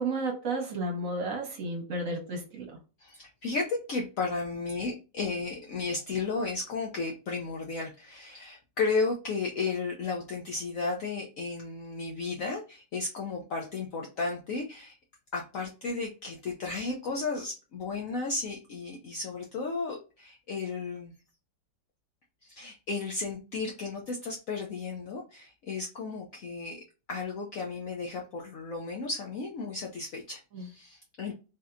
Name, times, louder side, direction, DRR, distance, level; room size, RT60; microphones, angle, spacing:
voice 1, 0.0-2.7 30.5-30.7, right 2 dB, 55° right, 2 dB, 1.1 m, -32 dB
voice 2, 3.0-15.0 15.3-21.1 22.4-26.8 27.1-31.3, left 4 dB, 70° left, 0 dB, 0.8 m, -34 dB
3.4 x 2.7 x 2.4 m, 0.32 s
omnidirectional pair, 2.0 m